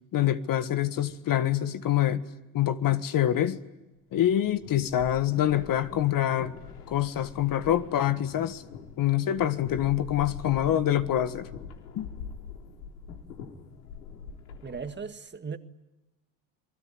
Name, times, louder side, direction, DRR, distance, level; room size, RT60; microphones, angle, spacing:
voice 1, 0.1-2.3 2.5-3.6 4.1-6.5 6.9-8.6 9.0-11.5 12.0-12.1, left 11 dB, 50° left, 1.7 m, -25 dB
sound 1, 4.4-15.0, left 6 dB, 85° left, 3.7 m, -44 dB
voice 2, 14.6-15.6, right 5 dB, 25° right, 1.9 m, -37 dB
29.0 x 20.5 x 9.7 m
supercardioid pair, 85°, 43 cm